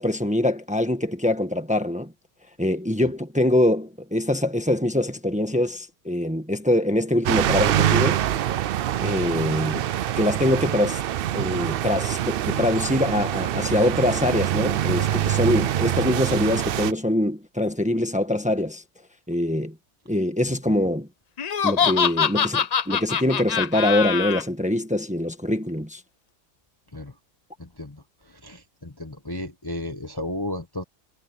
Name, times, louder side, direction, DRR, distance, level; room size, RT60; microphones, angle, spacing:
voice 1, 0.0-2.1 2.6-8.2 9.0-9.9 10.2-11.0 11.3-18.8 19.3-19.7 20.1-21.1 21.6-26.0, left 1 dB, 5° right, 1.4 m, -24 dB
sound 1, 7.2-16.9, right 11 dB, 90° right, 0.5 m, -25 dB
Laughter, 21.4-24.4, left 7 dB, 85° left, 0.3 m, -23 dB
voice 2, 27.6-28.0 28.4-30.8, left 1 dB, 15° left, 1.2 m, -33 dB
omnidirectional pair, 1.5 m